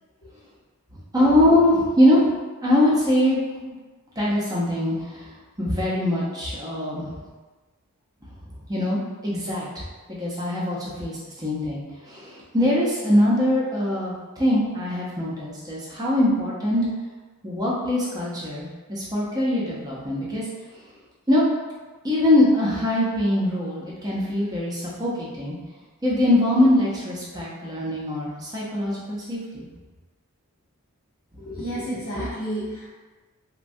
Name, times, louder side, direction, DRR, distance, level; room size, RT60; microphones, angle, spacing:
voice 1, 0.9-2.2 2.6-3.8 4.2-5.3 5.6-7.2 8.7-9.8 10.1-16.8 17.4-20.5 20.7-20.8 21.3-21.4 22.0-25.6 26.0-29.7, left 1 dB, 15° right, -6 dB, 0.6 m, -22 dB
voice 2, 31.4-32.9, equal, 55° left, -11 dB, 0.7 m, -31 dB
3.2 x 2.2 x 2.6 m, 1.3 s
head